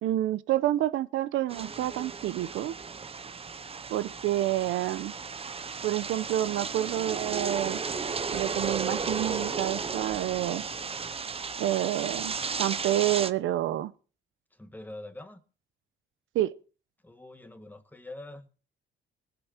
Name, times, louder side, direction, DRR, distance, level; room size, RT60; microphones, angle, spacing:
voice 1, 0.0-2.7 3.9-5.1 5.8-7.8 8.3-10.6 11.6-13.9 16.3-16.5, right 13 dB, 85° right, 0.8 m, -28 dB
sound 1, 1.5-13.3, right 5 dB, 30° right, 0.8 m, -34 dB
voice 2, 14.5-15.4 17.0-18.5, left 2 dB, 10° left, 1.9 m, -44 dB
20.0 x 7.8 x 4.5 m
cardioid pair, 90°, 20 cm